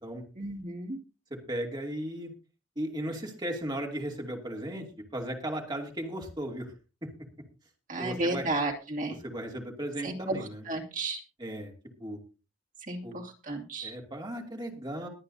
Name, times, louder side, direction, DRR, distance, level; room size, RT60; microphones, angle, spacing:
voice 1, 0.4-1.0 7.9-9.2 10.0-10.4 10.7-11.2 12.8-13.9, right 2 dB, 40° right, 1 dB, 2.6 m, -33 dB
voice 2, 1.5-2.3 2.8-4.9 5.1-6.7 8.0-8.5 9.2-10.6 11.4-11.7 12.0-12.2 13.0-13.2 13.8-15.1, right 1 dB, 20° right, 1 dB, 2.7 m, -36 dB
22.0 x 8.7 x 2.8 m, 0.31 s
head